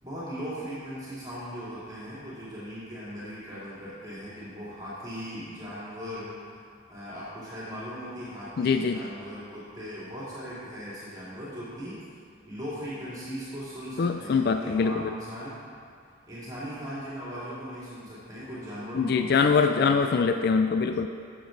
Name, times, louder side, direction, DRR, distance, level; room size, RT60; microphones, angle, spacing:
voice 1, 0.0-6.5 6.9-12.0 12.5-15.6 16.3-20.2, equal, 20° right, -11 dB, 2.6 m, -39 dB
voice 2, 8.6-9.0 14.0-15.1 18.9-21.1, left 5 dB, 50° left, 7 dB, 0.3 m, -23 dB
13.0 x 7.2 x 3.9 m, 2.3 s
head